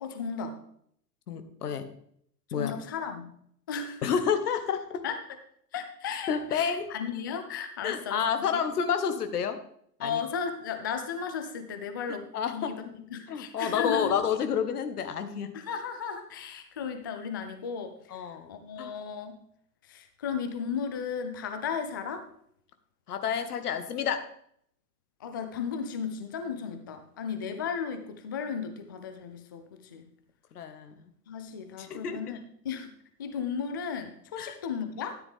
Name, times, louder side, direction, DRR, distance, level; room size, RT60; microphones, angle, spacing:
voice 1, 0.0-0.6 2.6-3.3 3.7-4.0 5.0-5.2 5.7-8.2 8.5-8.6 10.0-14.1 15.5-19.4 19.9-22.3 25.2-30.1 31.3-32.4 32.6-32.9 33.2-35.2, left 6 dB, 15° left, 8 dB, 0.3 m, -35 dB
voice 2, 1.3-1.8 2.5-2.7 4.0-5.0 6.3-6.9 7.8-9.6 10.0-10.2 12.3-12.7 13.3-15.5 18.1-18.5 18.8-18.9 23.1-24.2 30.5-30.9 31.8-32.2 34.4-34.6, left 7 dB, 65° left, 9 dB, 1.5 m, -29 dB
13.0 x 9.7 x 3.5 m, 0.66 s
figure-of-eight pair, 105°, 49 cm